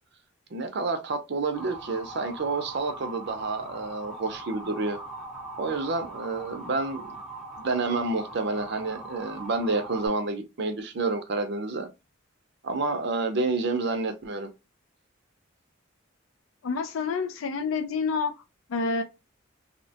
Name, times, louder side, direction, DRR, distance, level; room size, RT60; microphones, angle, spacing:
voice 1, 0.5-5.0 5.6-7.2 7.6-11.9 12.6-14.5, right 3 dB, 55° right, 0.5 m, -29 dB
Motor vehicle (road) / Siren, 1.5-10.1, right 2 dB, ahead, 0.5 m, -41 dB
voice 2, 16.6-18.3 18.7-19.0, left 4 dB, 80° left, 0.4 m, -28 dB
2.7 x 2.1 x 2.7 m
head